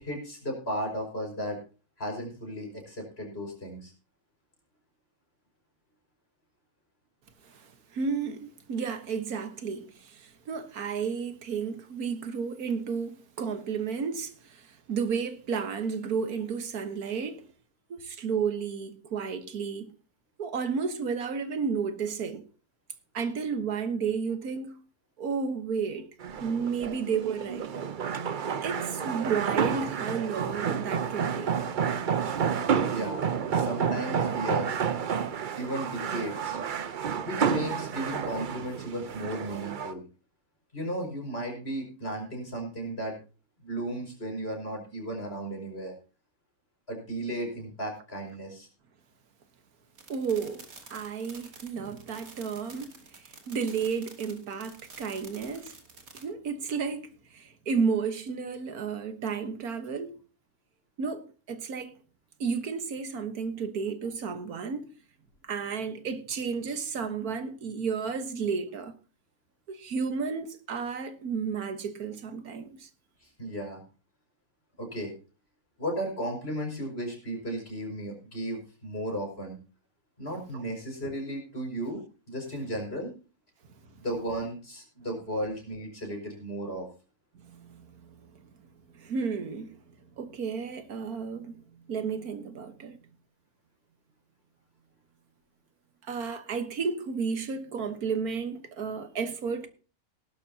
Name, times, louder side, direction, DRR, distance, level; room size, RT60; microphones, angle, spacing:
voice 1, 0.0-1.6 2.0-3.9 32.9-34.8 35.6-36.6 37.2-40.0 40.7-43.2 43.6-45.9 46.9-48.7 73.4-73.8 74.8-75.1 75.8-79.6 80.2-83.1 84.0-86.9, right 1 dB, 45° left, 5.8 m, -35 dB
voice 2, 7.4-17.5 17.9-19.9 20.4-22.5 23.1-24.8 25.2-26.1 26.4-27.7 28.5-31.6 50.1-55.8 56.1-60.1 61.0-61.9 62.4-64.9 65.4-69.0 69.7-72.9 80.5-80.6 87.4-88.7 88.9-93.0 96.0-99.7, right 5 dB, 90° right, 1.8 m, -32 dB
sound 1, 26.2-39.9, right 7 dB, 45° right, 0.6 m, -30 dB
sound 2, 50.0-56.2, right 3 dB, 70° right, 2.9 m, -49 dB
18.0 x 11.5 x 2.8 m
omnidirectional pair, 1.5 m